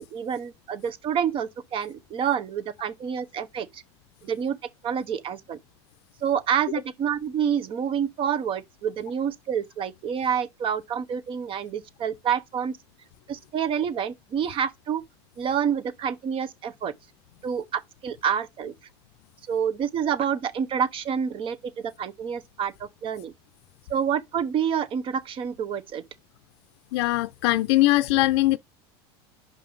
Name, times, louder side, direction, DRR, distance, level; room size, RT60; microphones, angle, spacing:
voice 1, 0.0-3.8 4.2-4.6 4.8-5.6 6.2-12.8 13.3-15.0 15.4-16.9 17.4-18.7 19.5-23.3 23.9-26.0, right 8 dB, 40° right, 0.9 m, -28 dB
voice 2, 26.9-28.6, left 18 dB, 75° left, 0.5 m, -21 dB
5.4 x 5.2 x 3.9 m
supercardioid pair, 110°, 14 cm